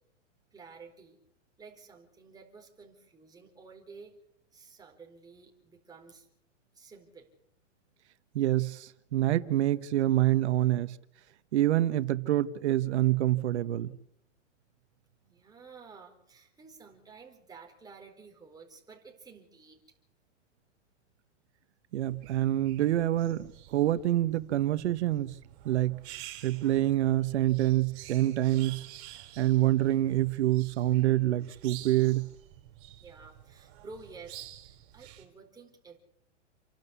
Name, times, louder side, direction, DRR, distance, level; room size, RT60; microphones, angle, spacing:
voice 1, 0.5-1.2 1.6-4.1 4.5-6.3 6.7-7.3 15.2-19.8 33.0-36.0, right 4 dB, 10° right, 4.3 m, -51 dB
voice 2, 8.3-11.0 11.5-14.0 21.9-25.4 25.6-26.0 26.4-28.9 29.4-32.3, right 14 dB, 65° right, 1.2 m, -26 dB
sound 1, 22.0-35.2, right 14 dB, 45° right, 5.2 m, -50 dB
29.0 x 12.0 x 8.3 m
hypercardioid pair, 145°, 37 cm